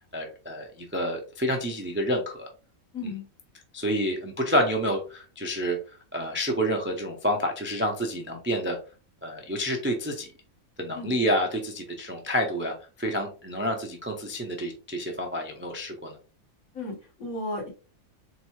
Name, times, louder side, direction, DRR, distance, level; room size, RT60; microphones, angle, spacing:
voice 1, 0.1-2.5 3.0-3.1 3.7-5.8 6.1-8.8 9.2-10.3 10.8-16.1, equal, 20° right, 2 dB, 0.3 m, -28 dB
voice 2, 2.9-3.3 10.9-11.2 16.7-17.7, left 2 dB, 80° left, -2 dB, 2.0 m, -34 dB
3.8 x 3.6 x 3.1 m, 0.36 s
omnidirectional pair, 1.5 m